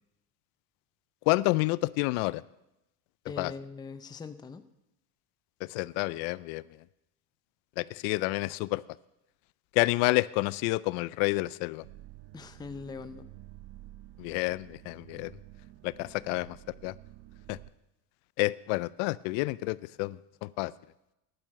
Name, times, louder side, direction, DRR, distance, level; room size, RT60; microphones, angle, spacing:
voice 1, 1.3-2.4 3.4-3.5 5.7-6.6 7.8-8.8 9.7-11.8 14.2-15.3 15.8-16.6 16.8-16.9 17.5-17.6 18.4-20.7, left 21 dB, 70° left, 20 dB, 0.5 m, -29 dB
voice 2, 3.3-4.6 12.3-13.3, left 5 dB, 10° left, 11 dB, 0.5 m, -41 dB
sound 1, 11.8-17.7, right 15 dB, 60° right, 0.8 m, -51 dB
11.0 x 10.5 x 6.4 m, 0.90 s
supercardioid pair, 125°, 48 cm